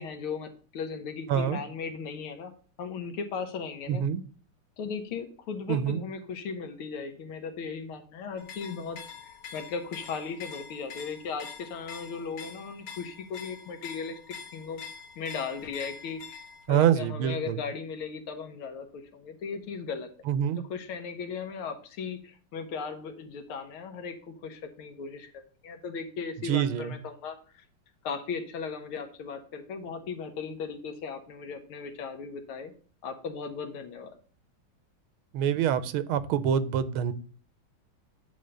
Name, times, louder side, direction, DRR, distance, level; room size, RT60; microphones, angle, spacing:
voice 1, 0.0-2.5 2.8-4.0 4.8-14.8 15.2-20.1 20.7-25.3 25.6-27.6 28.0-32.7 33.0-34.1, left 5 dB, 85° left, 6 dB, 1.9 m, -37 dB
voice 2, 1.3-1.6 3.9-4.2 5.7-6.0 16.7-17.6 20.3-20.6 26.4-27.0 35.3-37.1, right 9 dB, 85° right, 14 dB, 1.6 m, -26 dB
sound 1, 8.4-16.7, left 6 dB, 55° left, 1.1 m, -45 dB
8.8 x 3.7 x 6.6 m, 0.41 s
omnidirectional pair, 2.3 m